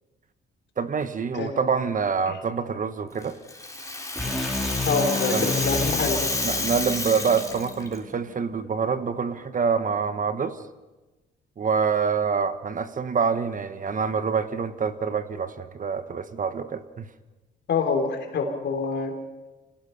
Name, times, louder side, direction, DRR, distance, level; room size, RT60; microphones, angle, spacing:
voice 1, 0.8-3.4 5.3-5.5 6.4-10.6 11.6-17.1, right 6 dB, 40° right, 10 dB, 1.3 m, -26 dB
Rattle (instrument), 3.2-8.0, left 2 dB, 15° left, 3.4 m, -30 dB
sound 1, 4.2-8.3, left 2 dB, ahead, 3.2 m, -31 dB
voice 2, 4.8-6.3 17.7-19.1, left 4 dB, 65° left, 5 dB, 3.7 m, -26 dB
25.0 x 17.5 x 5.9 m, 1.1 s
cardioid pair, 90°, 20 cm